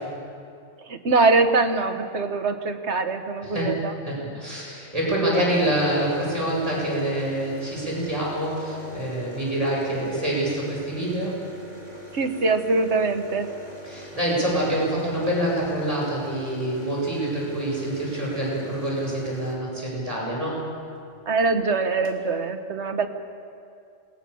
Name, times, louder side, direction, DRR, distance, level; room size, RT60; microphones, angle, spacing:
voice 1, 0.9-3.9 12.1-13.5 21.3-23.1, right 3 dB, 75° right, 8 dB, 1.6 m, -23 dB
voice 2, 4.1-11.4 13.8-20.6, right 1 dB, 30° right, -5 dB, 7.7 m, -26 dB
sound 1, 5.6-20.2 21.5-21.6 21.8-22.2, equal, 35° left, 3.2 m, -43 dB
27.5 x 20.0 x 7.0 m, 2.4 s
omnidirectional pair, 1.2 m